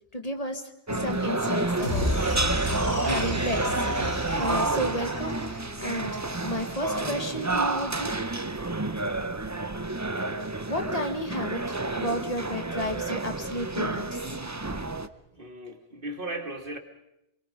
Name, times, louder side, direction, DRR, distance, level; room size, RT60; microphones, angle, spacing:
voice 1, 0.1-2.1 3.0-8.2 10.7-14.2, equal, 35° left, 4 dB, 2.1 m, -33 dB
sound 1, 0.9-15.1, right 2 dB, 15° right, 0.8 m, -29 dB
sound 2, 1.8-6.2, left 1 dB, 85° left, 8.3 m, -32 dB
voice 2, 15.3-16.8, right 1 dB, 55° right, 5 dB, 2.5 m, -36 dB
28.5 x 22.5 x 5.4 m, 0.82 s
omnidirectional pair, 1.1 m